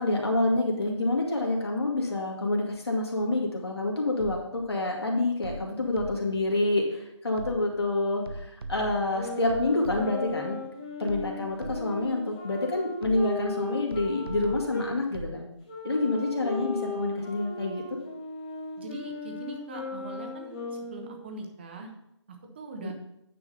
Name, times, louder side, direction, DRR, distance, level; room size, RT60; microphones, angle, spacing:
voice 1, 0.0-10.6 11.0-15.5 15.8-17.8 22.8-22.9, left 2 dB, 55° left, -1 dB, 2.3 m, -27 dB
sound 1, 4.2-4.7 5.4-6.5 7.4-7.9 8.3-10.4 11.1-12.1 13.0-13.5 13.9-15.4, right 2 dB, 50° right, 0.7 m, -40 dB
sound 2, 9.1-14.9 15.6-21.3, left 3 dB, 20° left, 1.5 m, -37 dB
voice 2, 18.8-21.9 22.3-22.9, right 2 dB, 20° right, 3 dB, 0.9 m, -41 dB
9.2 x 3.7 x 6.6 m, 0.79 s
figure-of-eight pair, 160°, 16 cm